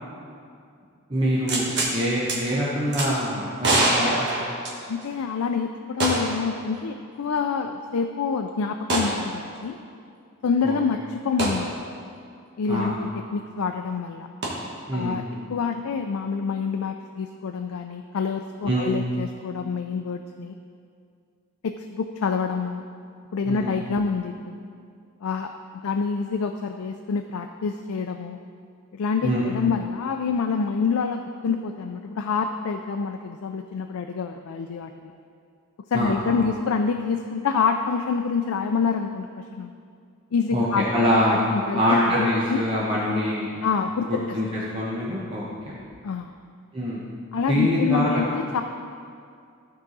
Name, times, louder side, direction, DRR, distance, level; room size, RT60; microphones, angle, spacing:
voice 1, 1.1-4.3 10.6-10.7 12.7-12.9 14.9-15.4 18.7-19.0 23.5-23.7 29.2-29.5 35.9-36.4 40.5-43.6 44.1-45.8 46.7-47.0 47.5-48.4, equal, 25° right, -7 dB, 1.0 m, -24 dB
sound 1, 1.5-1.9 2.3-2.4 2.9-3.1 3.6-5.1 6.0-6.4 6.8-6.9 8.9-9.2 11.4-11.6 14.4-14.5, right 2 dB, 55° right, 1.4 m, -24 dB
voice 2, 4.9-9.8 10.4-11.7 12.6-14.3 14.9-15.2 15.5-20.5 21.6-22.8 23.3-24.6 25.2-25.5 25.8-28.4 28.9-35.1 35.9-39.7 40.3-40.8 41.3-41.4 41.7-42.6 43.6-44.4 46.0-46.3 47.3-48.6, left 5 dB, 80° left, 5 dB, 0.4 m, -27 dB
14.0 x 4.7 x 4.0 m, 2.3 s
head